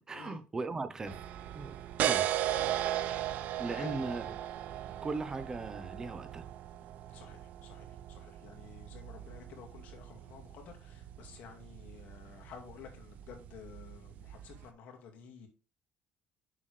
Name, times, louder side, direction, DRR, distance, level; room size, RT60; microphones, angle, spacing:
voice 1, 0.1-1.2 1.5-2.4 3.6-4.2 4.8-6.4, right 3 dB, 20° right, 0.9 m, -38 dB
sound 1, 1.0-14.7, right 12 dB, 60° right, 0.6 m, -38 dB
voice 2, 3.7-4.1 7.1-15.5, left 7 dB, 65° left, 2.2 m, -52 dB
7.4 x 6.2 x 3.4 m
cardioid pair, 120°, 3 cm